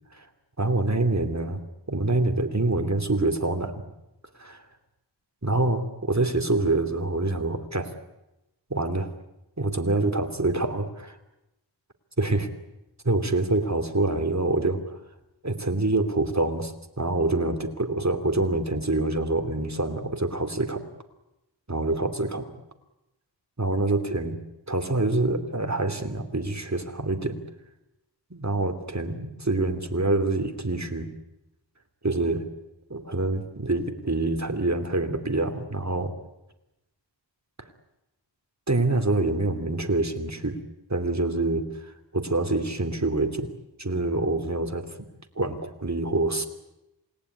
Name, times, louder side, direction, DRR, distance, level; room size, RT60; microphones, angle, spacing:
voice 1, 0.6-1.6 1.9-3.8 4.4-4.6 5.4-7.9 8.7-9.1 9.6-11.2 12.2-12.5 13.0-14.8 15.4-20.8 21.7-22.5 23.6-24.4 24.7-27.4 28.3-31.1 32.0-32.5 32.9-36.1 38.7-40.6 40.9-41.7 42.1-43.5 43.8-44.8 45.4-46.5, right 2 dB, 35° right, 7 dB, 3.1 m, -26 dB
27.5 x 19.0 x 9.8 m, 0.93 s
wide cardioid pair, 50°, 45 cm